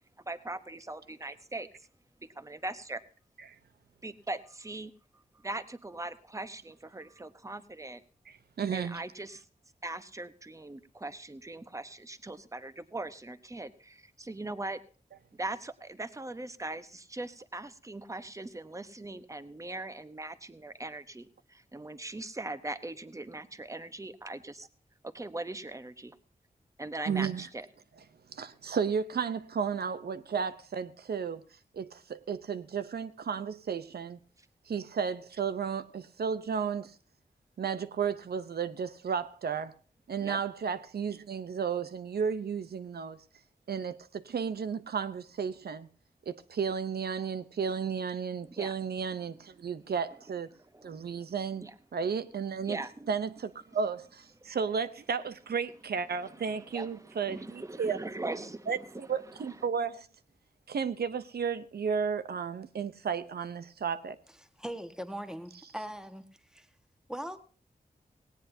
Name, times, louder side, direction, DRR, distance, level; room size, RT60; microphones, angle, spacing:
voice 1, 0.3-1.7 2.3-3.0 4.0-4.9 5.3-8.0 8.7-9.5 9.8-14.8 15.4-24.7 25.0-26.2 26.8-27.7 40.2-40.4 48.6-48.7 49.9-50.0 50.5-51.2 51.6-51.7 52.7-53.1 54.4-54.5 56.2-59.1 59.5-59.6, right 2 dB, 20° right, 1.0 m, -40 dB
voice 2, 8.6-9.0 27.1-27.5 28.3-31.4 31.7-34.2 34.7-37.0 37.6-39.7 40.1-43.2 43.7-45.9 46.3-50.5 50.8-51.6 51.9-52.8 53.1-58.0 58.7-60.1 60.7-64.2, right 6 dB, 80° right, 0.7 m, -33 dB
voice 3, 64.6-66.3 66.5-66.7 67.1-67.4, equal, 5° right, 1.4 m, -40 dB
18.0 x 17.5 x 2.7 m
wide cardioid pair, 90°, 16 cm